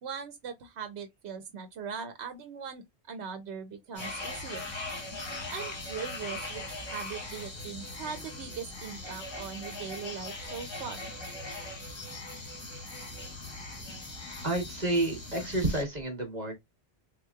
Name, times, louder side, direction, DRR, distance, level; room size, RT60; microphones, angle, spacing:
voice 1, 0.0-4.7 5.5-11.0, right 6 dB, 80° right, 0.9 m, -40 dB
sound 1, 3.9-15.8, left 2 dB, 30° left, 0.8 m, -40 dB
voice 2, 14.4-16.5, right 2 dB, 40° right, 1.3 m, -29 dB
3.7 x 3.0 x 2.3 m
omnidirectional pair, 1.1 m